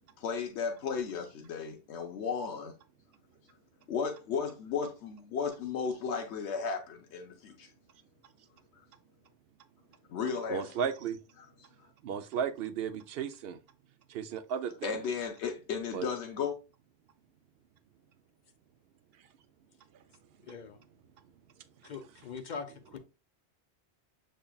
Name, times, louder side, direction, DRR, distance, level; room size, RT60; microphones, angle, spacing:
voice 1, 0.2-2.7 3.9-7.7 10.1-10.7 14.8-16.6, left 6 dB, 90° left, 1.0 m, -34 dB
voice 2, 10.5-11.2 12.0-13.6 14.1-15.0 15.9-16.1, right 7 dB, 65° right, 0.7 m, -34 dB
voice 3, 20.4-20.8 21.8-23.0, left 5 dB, 50° left, 0.7 m, -42 dB
6.7 x 3.2 x 2.3 m
omnidirectional pair, 1.1 m